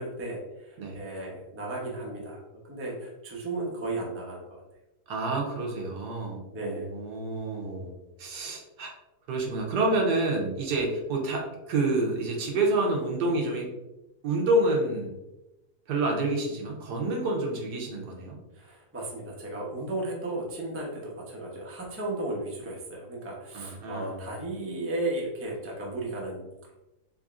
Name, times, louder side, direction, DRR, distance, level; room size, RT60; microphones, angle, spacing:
voice 1, 0.0-4.6 6.5-6.9 18.5-26.5, right 2 dB, 20° right, -3 dB, 0.4 m, -35 dB
voice 2, 5.1-7.9 8.2-8.9 9.3-13.7 14.2-15.1 15.9-18.4 23.5-24.2, right 2 dB, 80° right, 0 dB, 1.4 m, -28 dB
3.9 x 3.3 x 2.4 m, 0.98 s
omnidirectional pair, 1.7 m